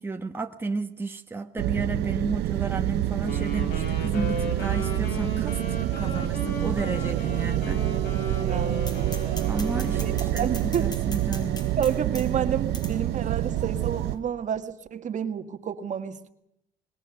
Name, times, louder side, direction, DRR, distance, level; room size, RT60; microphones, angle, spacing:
voice 1, 0.0-7.8 9.5-11.7, right 3 dB, 15° right, 1.2 m, -32 dB
sound 1, 1.6-14.2, right 15 dB, 80° right, 0.9 m, -27 dB
Wind instrument woodwind instrument, 3.3-10.7, left 1 dB, 90° left, 6.9 m, -36 dB
voice 2, 8.4-8.8 9.9-10.1 10.4-10.9 11.8-16.3, right 8 dB, 45° right, 1.7 m, -29 dB
sound 2, 8.8-14.2, left 1 dB, 25° left, 5.0 m, -42 dB
25.5 x 21.5 x 7.0 m
cardioid pair, 110°, 17 cm